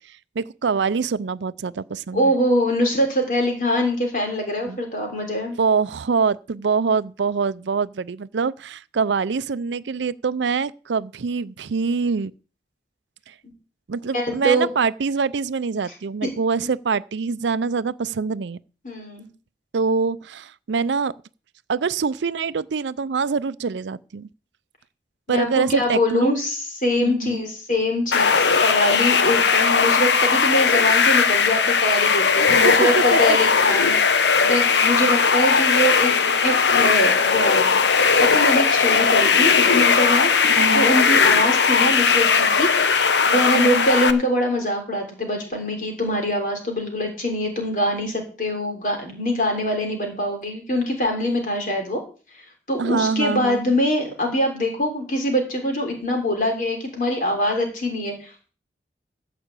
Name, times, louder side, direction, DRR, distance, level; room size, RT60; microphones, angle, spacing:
voice 1, 0.4-2.3 4.7-4.8 5.6-12.3 13.3-13.4 13.9-18.6 19.7-21.1 21.7-24.3 25.3-26.4 27.0-27.4 32.4-33.2 40.6-40.9 43.5-43.8 52.8-53.6, right 5 dB, 90° right, 0.5 m, -24 dB
voice 2, 2.1-5.6 14.1-14.7 16.2-16.3 18.8-19.3 25.3-52.0 52.7-58.5, equal, 45° left, 3.8 m, -24 dB
sound 1, 28.1-44.1, left 5 dB, 80° left, 0.9 m, -18 dB
13.5 x 5.0 x 8.2 m
head